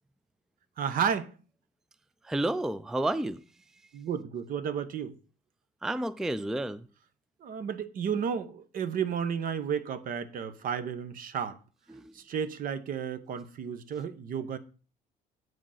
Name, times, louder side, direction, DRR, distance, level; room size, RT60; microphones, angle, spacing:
voice 1, 0.8-1.3 3.9-5.1 7.4-11.6 12.1-14.6, right 7 dB, 55° right, 0.9 m, -32 dB
voice 2, 2.2-3.4 5.8-6.9 11.9-12.2, right 1 dB, 5° right, 0.4 m, -31 dB
7.9 x 5.1 x 5.6 m
cardioid pair, 110°, 17 cm